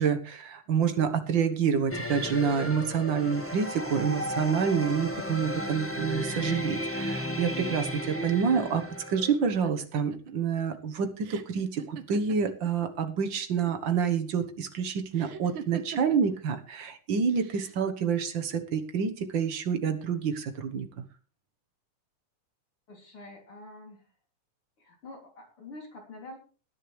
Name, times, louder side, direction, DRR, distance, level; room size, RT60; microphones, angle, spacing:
voice 1, 0.0-20.9, right 6 dB, 55° right, 8 dB, 1.3 m, -28 dB
sound 1, 1.9-9.3, equal, 15° left, 0.4 m, -34 dB
sound 2, 9.5-13.1 13.4-14.0 15.1-16.4 17.3-17.9, right 8 dB, 85° right, 1.1 m, -44 dB
voice 2, 22.9-24.1 24.8-26.4, left 2 dB, 40° left, 1 dB, 3.8 m, -46 dB
19.5 x 10.0 x 3.3 m, 0.37 s
omnidirectional pair, 3.7 m